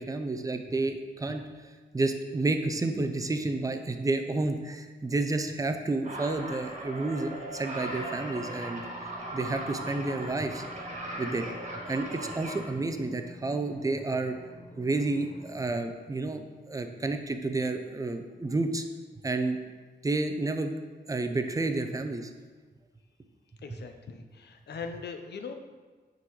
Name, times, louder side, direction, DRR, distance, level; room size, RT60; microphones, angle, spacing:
voice 1, 0.0-1.4 1.9-8.8 9.3-10.6 11.2-11.5 11.9-14.4 14.7-18.8 19.2-19.6 20.0-20.7 21.1-22.3, right 2 dB, 20° right, 7 dB, 0.5 m, -30 dB
sound 1, 6.0-12.7, right 1 dB, 40° right, 1.5 m, -38 dB
sound 2, 7.8-15.6, left 1 dB, 40° left, 0.9 m, -49 dB
voice 2, 23.6-25.5, left 5 dB, 70° left, 6 dB, 0.7 m, -40 dB
8.6 x 3.9 x 4.6 m, 1.4 s
wide cardioid pair, 160°, 18 cm